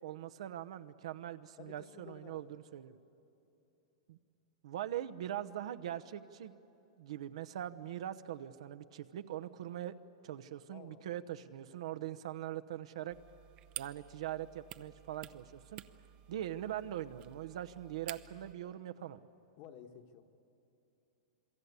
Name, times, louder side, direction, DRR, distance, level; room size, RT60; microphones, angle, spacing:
voice 1, 0.0-3.0 4.1-4.2 4.6-6.5 7.0-9.9 10.2-13.2 13.8-15.8 16.3-19.2, right 12 dB, 70° right, 10 dB, 0.9 m, -42 dB
voice 2, 1.6-2.5 10.7-11.1 19.6-20.2, left 8 dB, 40° left, 5 dB, 1.5 m, -53 dB
sound 1, 13.1-18.5, right 13 dB, 30° right, 0.6 m, -51 dB
27.5 x 22.5 x 8.3 m, 2.9 s
supercardioid pair, 155°, 3 cm